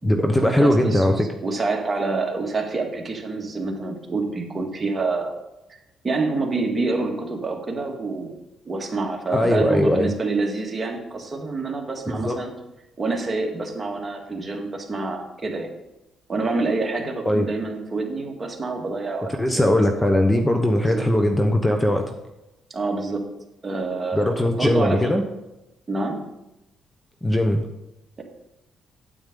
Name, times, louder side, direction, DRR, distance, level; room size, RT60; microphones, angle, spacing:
voice 1, 0.0-1.3 9.3-10.1 12.1-12.4 17.3-17.5 19.4-22.1 24.1-25.2 27.2-27.6, left 1 dB, 10° left, 5 dB, 0.9 m, -20 dB
voice 2, 0.6-5.3 5.7-5.8 6.0-8.3 8.7-12.5 13.0-15.7 16.3-19.8 20.8-21.1 22.7-23.3 23.6-25.1 25.9-26.2, right 3 dB, 30° right, 1 dB, 1.9 m, -27 dB
8.9 x 8.7 x 3.9 m, 0.92 s
cardioid pair, 90°, 0 cm